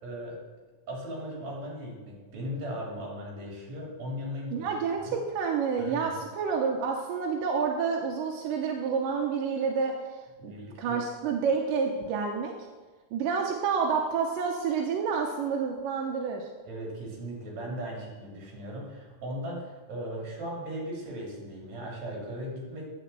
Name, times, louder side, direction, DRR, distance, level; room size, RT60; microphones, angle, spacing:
voice 1, 0.0-0.4 0.9-4.7 5.0-5.1 5.8-6.2 10.4-11.0 16.7-22.9, equal, 55° right, -3 dB, 4.0 m, -38 dB
voice 2, 4.5-9.9 10.4-10.5 10.8-12.7 13.1-16.5, right 5 dB, 85° right, 1 dB, 2.4 m, -29 dB
9.8 x 5.2 x 7.7 m, 1.3 s
omnidirectional pair, 3.8 m